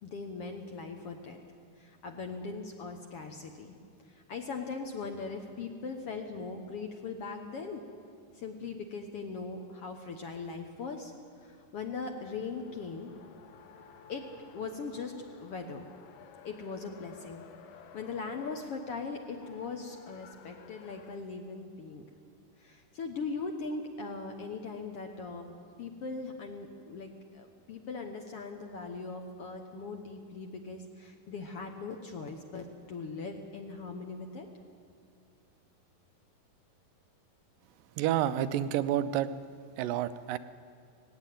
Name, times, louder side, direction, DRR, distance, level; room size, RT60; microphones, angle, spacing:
voice 1, 0.0-1.4 1.8-3.7 4.3-7.8 8.4-11.1 11.4-13.1 14.1-14.2 14.5-15.1 15.4-15.9 16.4-17.4 17.9-22.0 22.6-34.5, left 4 dB, 60° left, 4 dB, 1.6 m, -40 dB
Race car auto racing, 12.0-21.2, left 7 dB, 80° left, 2.7 m, -54 dB
voice 2, 38.0-39.3 39.8-40.4, right 11 dB, 85° right, 12 dB, 2.4 m, -29 dB
18.5 x 16.0 x 9.4 m, 2.3 s
omnidirectional pair, 3.8 m